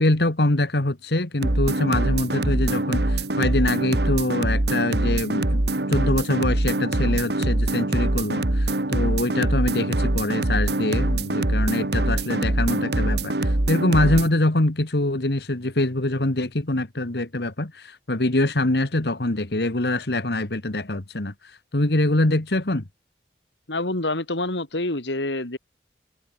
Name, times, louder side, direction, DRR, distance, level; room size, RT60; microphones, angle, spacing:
voice 1, 0.0-5.6 5.9-22.8, left 1 dB, 65° left, 1.7 m, -24 dB
sound 1, 1.4-14.3, right 1 dB, 70° right, 1.8 m, -23 dB
voice 2, 23.7-25.6, left 2 dB, 85° left, 3.2 m, -27 dB
head